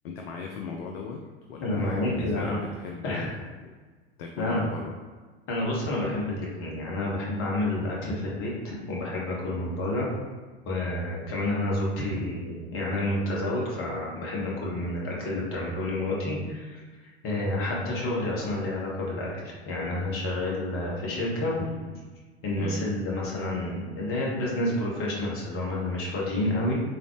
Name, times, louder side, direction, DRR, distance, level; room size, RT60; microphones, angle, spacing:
voice 1, 0.0-1.2 1.5-3.7 4.2-5.0 21.4-22.0 22.6-22.9, left 5 dB, 60° left, 2 dB, 0.5 m, -38 dB
voice 2, 1.6-2.6 3.0-3.3 4.4-4.7 5.5-10.1 10.6-16.8 17.2-21.5 22.4-26.7, left 1 dB, 40° left, -4 dB, 1.4 m, -29 dB
3.8 x 3.1 x 3.0 m, 1.4 s
figure-of-eight pair, 85°, 33 cm